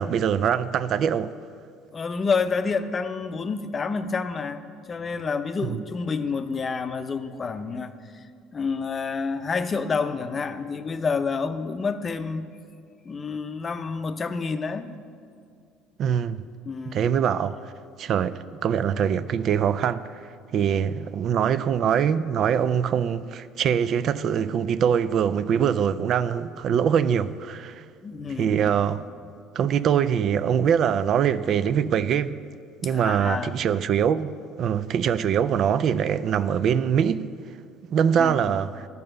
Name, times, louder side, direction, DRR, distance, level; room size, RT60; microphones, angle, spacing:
voice 1, 0.0-1.3 5.7-5.8 16.0-16.4 16.9-17.6 18.0-20.0 20.5-27.8 28.4-29.0 29.6-32.4 32.8-37.3 37.9-38.9, right 8 dB, 55° right, 0.3 m, -23 dB
voice 2, 1.9-8.2 8.5-12.5 13.0-15.0 16.6-17.1 28.0-28.7 32.8-33.6 38.2-38.6, left 5 dB, 35° left, 0.6 m, -29 dB
11.0 x 5.4 x 7.7 m
supercardioid pair, 85°, 0 cm